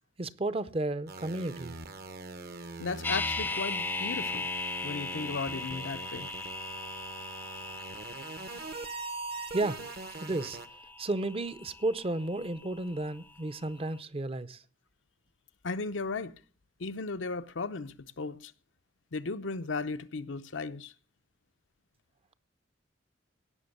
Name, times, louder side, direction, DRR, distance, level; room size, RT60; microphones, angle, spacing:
voice 1, 0.2-1.8 9.5-9.8 10.2-10.6 11.0-14.6, right 2 dB, 30° right, 0.6 m, -32 dB
sound 1, 1.1-10.7, right 3 dB, 55° right, 1.0 m, -42 dB
voice 2, 2.8-4.5 4.8-6.3 15.6-16.3 16.8-18.5 19.1-20.9, left 4 dB, 85° left, 0.8 m, -35 dB
sound 2, 3.0-13.1 13.4-13.5, left 3 dB, 10° left, 0.5 m, -38 dB
17.0 x 6.2 x 6.6 m
head